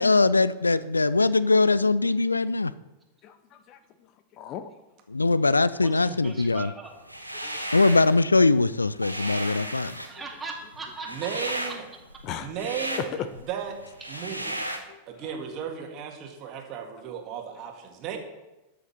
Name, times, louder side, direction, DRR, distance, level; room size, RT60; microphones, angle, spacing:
voice 1, 0.0-2.7 5.1-6.7 7.7-9.9, left 3 dB, 80° left, 17 dB, 0.4 m, -21 dB
voice 2, 3.2-3.8 4.4-4.7 7.3-7.7 9.2-9.3 12.2-12.5 12.9-13.3 14.9-15.2, left 9 dB, 35° left, 11 dB, 0.7 m, -36 dB
voice 3, 5.8-6.9 10.1-11.5 12.7-12.9 13.1-13.2 14.0-14.7, right 3 dB, 15° right, 0 dB, 2.4 m, -40 dB
sound 1, 7.0-8.2 8.6-14.8, right 1 dB, 90° right, 1.3 m, -35 dB
voice 4, 11.1-11.8 12.4-13.1 13.5-13.8 14.1-14.6 15.1-18.2, right 8 dB, 40° right, 3 dB, 2.0 m, -35 dB
12.5 x 6.9 x 5.6 m, 1.0 s
figure-of-eight pair, 90°, 0 cm